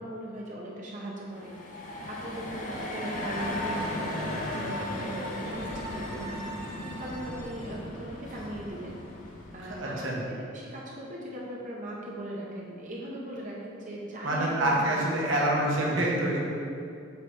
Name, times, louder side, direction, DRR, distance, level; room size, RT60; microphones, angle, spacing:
voice 1, 0.0-1.5 2.1-6.6 7.0-9.0 9.5-14.9 15.6-15.7, right 1 dB, 40° right, -4 dB, 0.8 m, -39 dB
sound 1, 1.3-10.0, left 1 dB, 40° left, 0.9 m, -36 dB
voice 2, 9.8-10.1 14.2-16.4, right 1 dB, 65° right, -4 dB, 1.4 m, -26 dB
7.1 x 4.0 x 4.6 m, 2.5 s
head